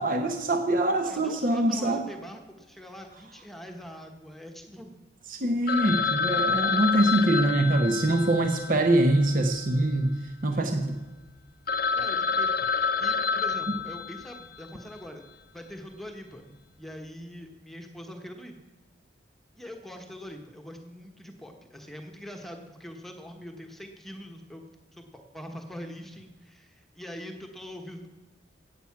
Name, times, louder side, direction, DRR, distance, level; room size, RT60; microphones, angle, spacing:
voice 1, 0.0-2.1 5.3-11.0 13.7-13.8, right 1 dB, 45° right, 5 dB, 0.9 m, -24 dB
voice 2, 1.0-4.9 10.5-10.7 11.9-15.3 15.5-18.5 19.6-24.6 24.9-28.2, equal, ahead, 3 dB, 1.1 m, -43 dB
Telephone, 5.7-10.0 10.3-10.4 10.9-11.0 11.4-11.5 11.7-14.6, left 5 dB, 50° left, 0.7 m, -28 dB
15.0 x 8.6 x 5.8 m, 1.3 s
head